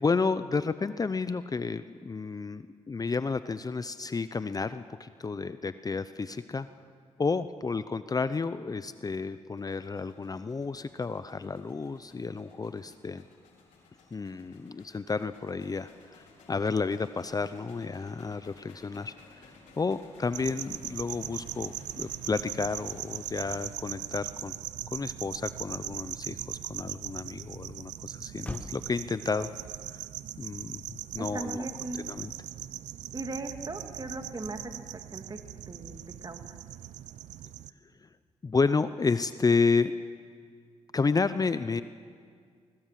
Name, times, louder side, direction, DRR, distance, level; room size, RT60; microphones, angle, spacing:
voice 1, 0.0-6.7 7.2-13.2 14.1-16.2 16.5-19.1 19.4-24.6 24.9-29.5 29.9-30.0 30.4-30.8 31.1-31.6 32.0-32.3 38.4-39.9 40.9-41.8, left 4 dB, 30° left, 13 dB, 0.7 m, -31 dB
sound 1, 9.6-23.7, left 3 dB, 90° left, 4.3 m, -57 dB
sound 2, 20.3-37.7, right 12 dB, 85° right, 0.6 m, -40 dB
Motor vehicle (road), 28.4-33.0, left 1 dB, 10° left, 1.3 m, -51 dB
voice 2, 31.2-32.0 33.1-35.4 35.7-36.6, right 2 dB, 35° right, 5 dB, 2.4 m, -38 dB
20.5 x 19.0 x 7.6 m, 2.1 s
cardioid pair, 65°, 12 cm